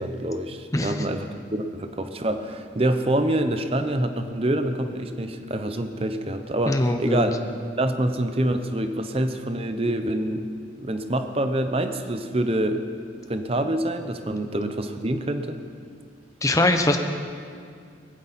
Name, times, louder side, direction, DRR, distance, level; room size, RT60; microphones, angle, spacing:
voice 1, 0.0-7.4 7.8-10.5 10.8-12.8 13.3-15.6, right 1 dB, 30° right, 8 dB, 0.8 m, -26 dB
voice 2, 0.7-1.0 6.7-7.2 16.4-17.0, left 1 dB, 15° left, 5 dB, 0.9 m, -22 dB
20.0 x 14.5 x 4.2 m, 2.2 s
head